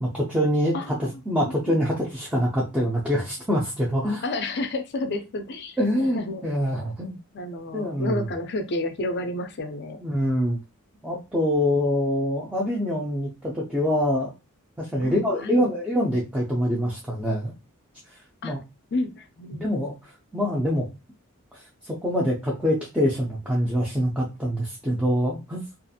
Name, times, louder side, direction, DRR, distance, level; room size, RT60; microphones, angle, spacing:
voice 1, 0.0-4.2 5.8-7.2 7.7-8.3 10.0-10.6 11.0-14.3 14.8-17.5 18.4-18.6 19.5-19.9 20.3-20.9 21.5-25.6, equal, 5° right, -5 dB, 0.5 m, -25 dB
voice 2, 0.7-1.8 4.2-5.8 6.1-6.4 7.3-10.0 15.0-15.7 18.4-18.6 18.9-19.6, left 2 dB, 50° left, 7 dB, 0.5 m, -31 dB
2.4 x 2.4 x 2.6 m, 0.27 s
head